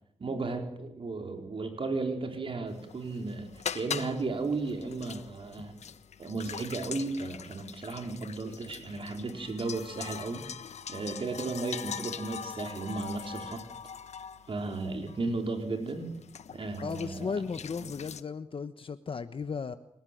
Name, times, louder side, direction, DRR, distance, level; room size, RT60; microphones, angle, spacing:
voice 1, 0.2-5.8 6.2-13.6 14.5-16.1 16.5-17.4, right 3 dB, 50° right, 5 dB, 4.5 m, -35 dB
sound 1, 2.7-18.2, left 7 dB, 80° left, 1.2 m, -42 dB
voice 2, 16.8-19.8, left 5 dB, 50° left, 11 dB, 1.1 m, -35 dB
30.0 x 18.5 x 9.2 m, 0.74 s
wide cardioid pair, 110°, 11 cm